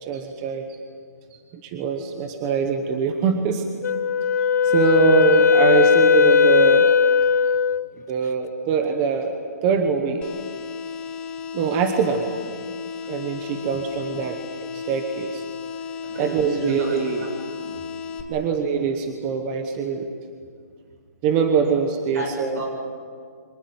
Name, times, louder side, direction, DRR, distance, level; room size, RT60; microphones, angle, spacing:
voice 1, 0.0-0.6 1.6-3.7 4.6-6.9 8.1-9.4 9.6-10.3 11.5-12.3 13.1-14.4 14.7-15.5 16.2-17.2 18.3-20.1 21.2-22.6, right 6 dB, 15° right, 6 dB, 1.0 m, -23 dB
Wind instrument woodwind instrument, 3.8-7.9, left 6 dB, 75° left, 0.7 m, -17 dB
sound 1, 10.2-18.2, left 6 dB, 10° left, 1.1 m, -34 dB
voice 2, 16.0-17.8 22.1-22.7, right 1 dB, 65° right, 3 dB, 7.4 m, -33 dB
24.5 x 20.0 x 9.4 m, 2.1 s
hypercardioid pair, 175°, 9 cm